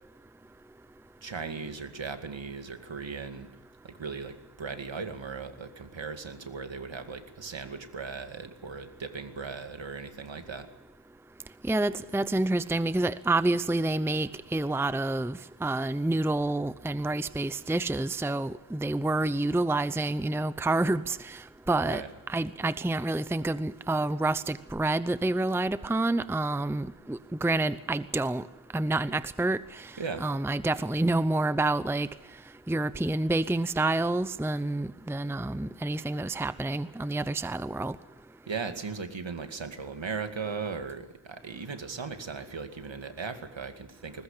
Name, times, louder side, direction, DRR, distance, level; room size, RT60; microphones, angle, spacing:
voice 1, 1.2-3.5 3.8-10.7 21.8-22.1 30.0-30.2 38.5-44.2, right 5 dB, 65° right, 7 dB, 2.4 m, -37 dB
voice 2, 11.6-22.0 22.3-28.4 28.7-29.9 30.2-32.1 32.7-38.0, right 2 dB, 5° right, 15 dB, 0.7 m, -28 dB
21.0 x 19.5 x 6.8 m, 1.1 s
wide cardioid pair, 65°, 49 cm